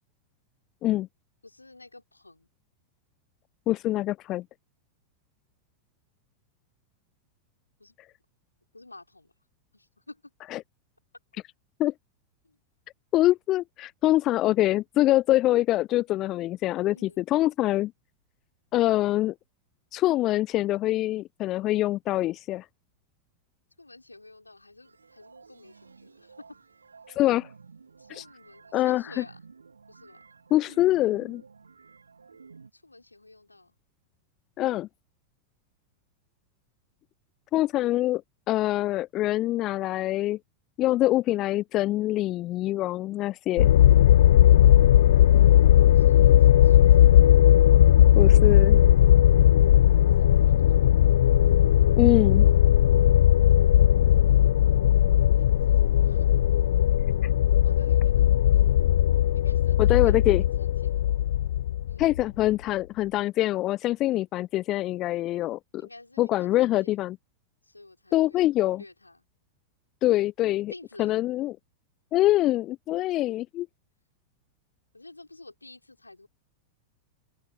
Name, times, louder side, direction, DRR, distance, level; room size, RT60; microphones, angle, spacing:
voice 1, 1.4-2.5 7.8-8.0 8.7-9.3 9.7-10.3 12.4-12.6 16.2-16.3 16.9-17.3 17.7-17.9 23.8-26.6 28.0-29.4 29.9-30.2 32.7-33.8 45.9-47.2 50.1-51.2 55.3-56.3 57.1-57.4 57.6-58.7 59.3-61.0 61.9-62.1 65.8-67.0 67.6-69.3 70.7-71.2 74.9-76.3, left 2 dB, 85° left, 4.1 m, -51 dB
voice 2, 3.7-4.4 10.5-10.6 11.8-11.9 13.1-17.9 18.7-19.3 19.9-22.6 27.2-27.5 28.1-28.2 28.7-29.2 30.5-31.4 34.6-34.9 37.5-38.2 38.5-40.4 40.8-43.7 48.2-48.8 52.0-52.5 59.8-60.4 62.0-65.8 66.2-67.2 68.1-68.8 70.0-70.7 71.0-71.5 72.1-73.7, left 15 dB, 35° left, 0.7 m, -24 dB
sound 1, 24.8-32.7, right 5 dB, 75° right, 3.7 m, -52 dB
sound 2, 43.6-62.5, left 11 dB, 60° left, 0.3 m, -18 dB
open air
figure-of-eight pair, 90°, 0 cm